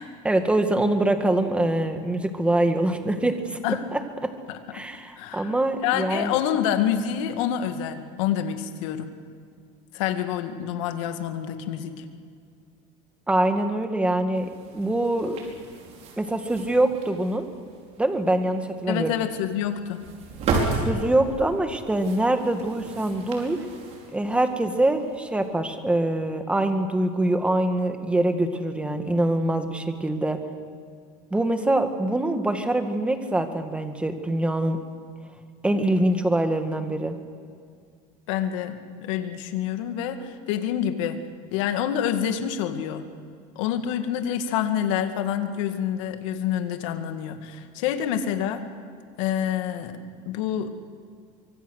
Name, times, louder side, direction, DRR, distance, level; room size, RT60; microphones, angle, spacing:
voice 1, 0.2-3.6 3.9-4.3 4.7-6.4 13.3-14.5 14.7-15.4 16.2-17.5 18.0-19.1 20.8-23.6 24.1-30.4 31.3-34.8 35.6-37.2, right 1 dB, 5° right, 6 dB, 1.9 m, -24 dB
voice 2, 4.5-4.9 5.2-5.5 5.8-9.1 9.9-12.0 18.9-20.0 38.3-41.2 41.5-43.1 43.6-48.7 49.2-50.0 50.3-50.7, left 9 dB, 85° left, 7 dB, 2.1 m, -27 dB
sound 1, 14.3-25.5, right 3 dB, 45° right, 5.3 m, -34 dB
24.5 x 24.0 x 6.5 m, 2.2 s
cardioid pair, 140°, 16 cm